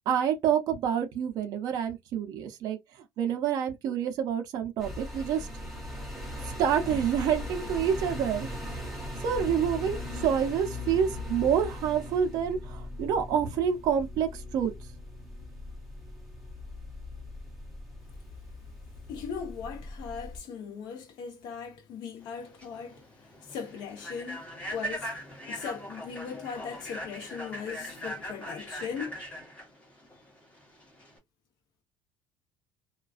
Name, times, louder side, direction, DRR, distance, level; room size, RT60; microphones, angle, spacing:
voice 1, 0.1-2.8 3.2-5.5 6.6-8.5 9.2-14.7, right 8 dB, 45° right, 0.5 m, -27 dB
sound 1, 4.8-20.4, left 2 dB, ahead, 0.7 m, -39 dB
voice 2, 19.1-24.5 24.7-25.1 25.5-29.2, left 6 dB, 55° left, 0.8 m, -39 dB
Human voice / Train, 22.3-31.2, equal, 15° left, 1.0 m, -40 dB
2.3 x 2.3 x 2.4 m
cardioid pair, 170°, 8 cm